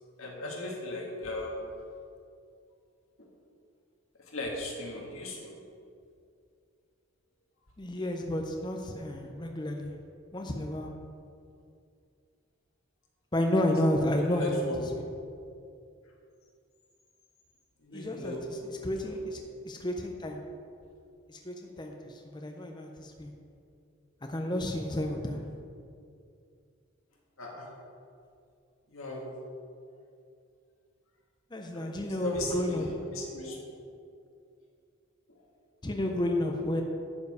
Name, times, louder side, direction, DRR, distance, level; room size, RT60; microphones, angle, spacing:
voice 1, 0.2-1.7 3.2-3.3 4.2-5.5 13.9-14.8 17.8-19.2 27.4-27.7 28.9-29.4 31.7-33.6 35.3-35.4, left 1 dB, 80° left, -1 dB, 1.6 m, -37 dB
voice 2, 7.8-9.9 10.3-10.9 13.3-14.7 17.9-18.3 18.8-19.4 19.6-20.4 21.3-23.3 24.3-25.4 31.5-32.9 35.8-36.8, left 1 dB, 20° left, 2 dB, 0.6 m, -31 dB
11.5 x 4.7 x 4.8 m, 2.4 s
head